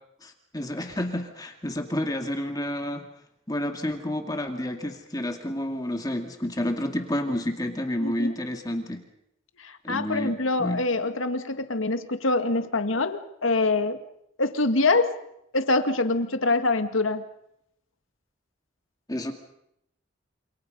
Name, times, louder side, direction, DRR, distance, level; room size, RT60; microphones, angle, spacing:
voice 1, 0.2-3.0 3.5-9.0 9.8-10.8 19.1-19.3, left 1 dB, 20° left, 4 dB, 2.2 m, -30 dB
voice 2, 8.0-8.4 9.6-14.0 14.4-15.1 15.5-17.2, left 3 dB, 90° left, 8 dB, 1.9 m, -25 dB
28.5 x 27.5 x 5.4 m, 0.77 s
head